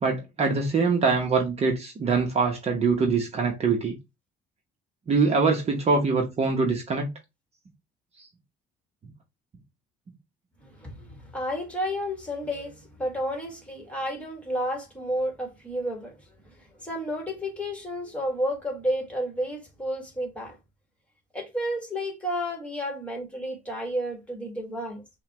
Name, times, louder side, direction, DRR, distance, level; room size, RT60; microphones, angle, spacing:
voice 1, 0.0-4.0 5.1-7.1 8.2-8.3, right 4 dB, 40° right, 0.9 m, -24 dB
voice 2, 10.6-20.6 21.3-25.0, equal, 5° left, 1.7 m, -31 dB
5.6 x 2.3 x 2.9 m
cardioid pair, 110°, 17 cm